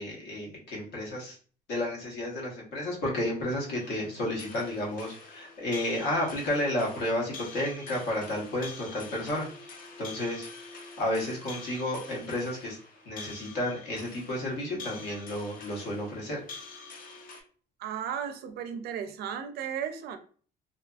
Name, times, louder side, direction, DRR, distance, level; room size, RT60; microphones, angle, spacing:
voice 1, 0.0-1.4 1.7-12.8 13.1-16.4, left 1 dB, 80° left, -3 dB, 1.1 m, -32 dB
sound 1, 3.8-17.4, left 4 dB, 55° left, 0.6 m, -46 dB
voice 2, 17.8-20.2, right 8 dB, 70° right, 8 dB, 0.4 m, -35 dB
2.7 x 2.5 x 2.3 m, 0.43 s
cardioid pair, 110°, 17 cm